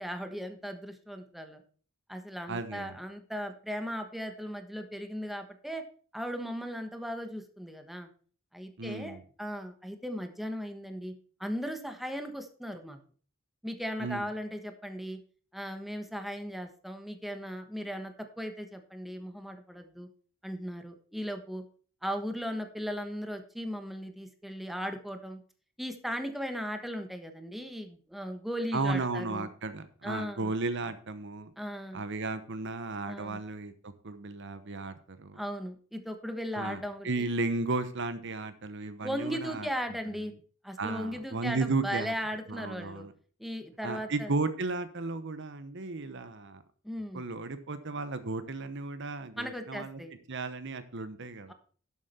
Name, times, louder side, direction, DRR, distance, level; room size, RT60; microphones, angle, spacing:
voice 1, 0.0-1.6 2.1-5.8 6.1-8.1 8.5-11.1 11.4-13.0 13.6-15.2 15.5-20.1 20.4-21.6 22.0-25.4 25.8-29.5 30.0-30.5 31.6-32.0 33.1-33.4 35.3-37.1 39.0-40.3 40.6-43.1 43.4-44.3 46.8-47.3 49.4-50.2 51.5-51.6, equal, ahead, 6 dB, 1.2 m, -37 dB
voice 2, 2.5-3.0 8.8-9.2 14.0-14.3 28.7-31.5 31.9-35.4 36.5-39.7 40.8-42.1 42.5-43.1 43.8-46.6 47.1-50.0 50.3-51.5, right 3 dB, 60° right, 11 dB, 1.0 m, -34 dB
12.0 x 7.5 x 4.3 m, 0.42 s
head